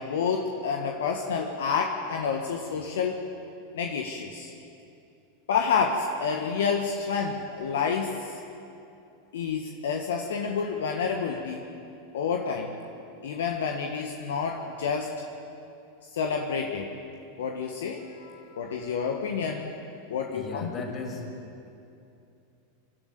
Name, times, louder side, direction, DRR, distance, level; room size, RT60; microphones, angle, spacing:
voice 1, 0.0-3.2 3.7-4.5 5.5-8.3 9.3-11.6 12.1-12.8 13.2-15.2 16.1-16.9 17.4-19.7 20.1-20.7, left 6 dB, 70° left, 2 dB, 1.5 m, -29 dB
voice 2, 20.3-21.3, left 4 dB, 35° left, -1 dB, 6.4 m, -36 dB
25.5 x 12.0 x 9.5 m, 2.7 s
figure-of-eight pair, 90°, 0 cm